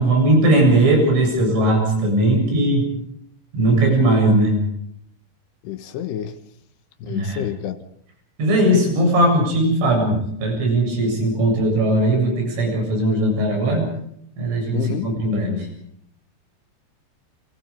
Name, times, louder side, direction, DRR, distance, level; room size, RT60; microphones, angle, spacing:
voice 1, 0.0-2.9 3.5-4.6 7.1-7.5 8.4-13.9 14.4-15.7, right 1 dB, 75° right, 10.0 m, -18 dB
voice 2, 5.6-6.4 7.0-7.8 14.7-15.1, left 11 dB, 70° left, 2.9 m, -28 dB
30.0 x 24.5 x 5.2 m
omnidirectional pair, 5.6 m